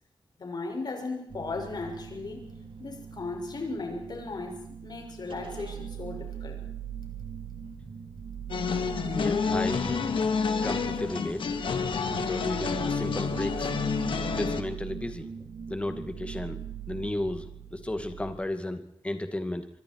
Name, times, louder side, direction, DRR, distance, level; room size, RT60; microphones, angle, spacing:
voice 1, 0.4-2.4 2.8-4.6 4.8-6.6, left 3 dB, 55° left, 4 dB, 6.8 m, -36 dB
sound 1, 1.3-18.3, right 8 dB, 80° right, 3.5 m, -41 dB
sound 2, 8.5-14.6, left 5 dB, 80° left, 2.1 m, -29 dB
voice 2, 9.0-10.0 10.6-11.6 12.1-13.7 14.4-15.3 15.7-16.6 16.9-19.7, left 1 dB, 15° left, 7 dB, 2.3 m, -34 dB
25.0 x 24.0 x 4.8 m, 0.73 s
wide cardioid pair, 125°, 9 cm